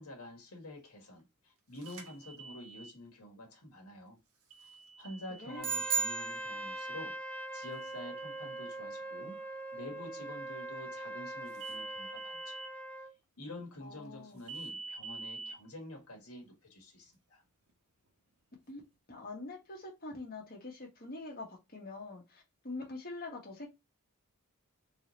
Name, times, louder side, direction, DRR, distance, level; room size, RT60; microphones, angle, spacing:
voice 1, 0.0-4.2 4.6-4.7 5.0-9.4 9.7-12.6 13.0-13.1 13.4-17.4, left 1 dB, 70° left, 1.5 m, -48 dB
sound 1, 1.8-2.9 4.5-5.6 7.6-8.7 11.5-12.7 14.5-15.5, right 3 dB, 70° right, 1.1 m, -46 dB
Trumpet, 5.5-13.1, right 1 dB, 5° left, 0.5 m, -42 dB
sound 2, 5.6-7.1, right 6 dB, 40° right, 0.8 m, -34 dB
voice 2, 13.8-14.4 18.7-18.8 19.1-23.7, left 2 dB, 45° left, 1.4 m, -44 dB
3.9 x 2.8 x 3.1 m
head